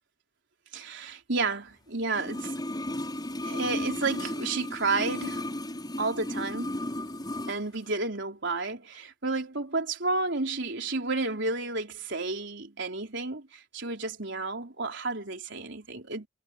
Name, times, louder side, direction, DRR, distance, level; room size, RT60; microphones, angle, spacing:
voice 1, 0.7-2.6 3.4-5.4 6.0-6.7 7.5-16.3, right 3 dB, 65° right, 4.2 m, -31 dB
sound 1, 2.1-7.6 7.9-8.0, left 1 dB, 20° left, 5.8 m, -34 dB
head